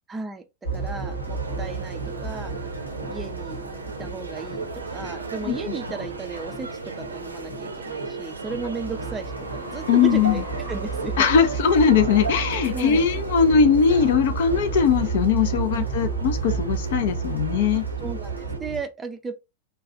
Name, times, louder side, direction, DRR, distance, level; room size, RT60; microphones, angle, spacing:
voice 1, 0.1-0.4 0.7-2.5 3.1-9.3 9.7-11.3 12.7-13.0 15.8-15.9 18.0-19.3, right 4 dB, 15° right, 0.5 m, -34 dB
sound 1, 0.6-18.8, right 4 dB, 85° left, 1.2 m, -32 dB
sound 2, 0.8-18.6, right 4 dB, 80° right, 0.5 m, -36 dB
voice 2, 9.9-10.4 11.2-17.8, left 6 dB, 55° left, 0.5 m, -20 dB
3.2 x 2.3 x 3.6 m
figure-of-eight pair, 90°, 0 cm